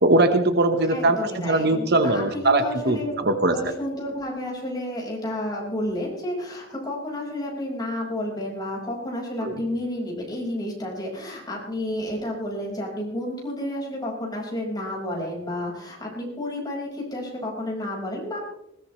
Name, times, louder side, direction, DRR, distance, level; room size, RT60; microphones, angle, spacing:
voice 1, 0.0-3.5 9.4-9.5, right 2 dB, 55° right, 8 dB, 1.2 m, -21 dB
voice 2, 0.9-3.1 3.5-18.4, left 1 dB, 20° left, -2 dB, 5.2 m, -31 dB
20.5 x 17.5 x 3.3 m, 0.82 s
head